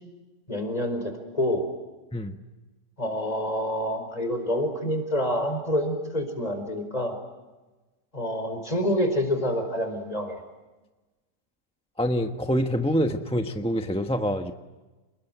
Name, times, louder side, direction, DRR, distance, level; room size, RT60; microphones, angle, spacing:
voice 1, 0.5-1.6 3.0-7.1 8.1-10.4, equal, 25° left, 6 dB, 4.9 m, -27 dB
voice 2, 12.0-14.5, equal, 5° left, 5 dB, 1.0 m, -26 dB
29.0 x 21.0 x 9.2 m, 1.2 s
omnidirectional pair, 1.8 m